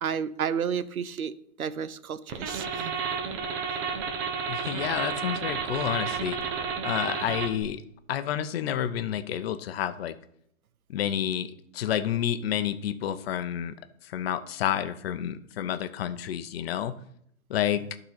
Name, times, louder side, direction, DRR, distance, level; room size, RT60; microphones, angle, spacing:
voice 1, 0.0-2.9, right 7 dB, 90° right, 15 dB, 0.6 m, -31 dB
sound 1, 2.3-7.6, right 6 dB, 35° right, 1.2 m, -31 dB
voice 2, 4.5-6.4 6.8-7.8 8.1-10.2 10.9-13.8 14.0-16.9 17.5-17.8, left 10 dB, 45° left, 12 dB, 0.7 m, -29 dB
12.0 x 3.9 x 5.7 m, 0.73 s
hypercardioid pair, 120°, 42 cm